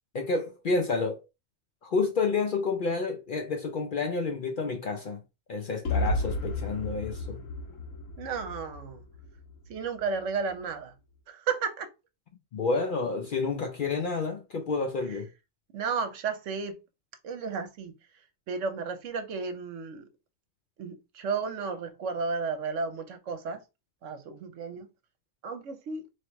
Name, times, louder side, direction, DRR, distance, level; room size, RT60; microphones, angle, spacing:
voice 1, 0.1-1.2 1.8-5.2 5.5-7.4 12.5-15.3, left 4 dB, 55° left, 0.6 m, -29 dB
sound 1, 5.8-9.7, left 1 dB, 80° left, 1.4 m, -32 dB
voice 2, 8.2-9.0 9.7-10.9 11.3-11.9 15.1-15.2 15.7-16.8 17.2-17.9 18.5-20.1 20.8-23.6 24.0-24.9 25.4-26.0, right 5 dB, 70° right, 1.1 m, -33 dB
3.1 x 2.9 x 4.5 m
omnidirectional pair, 1.3 m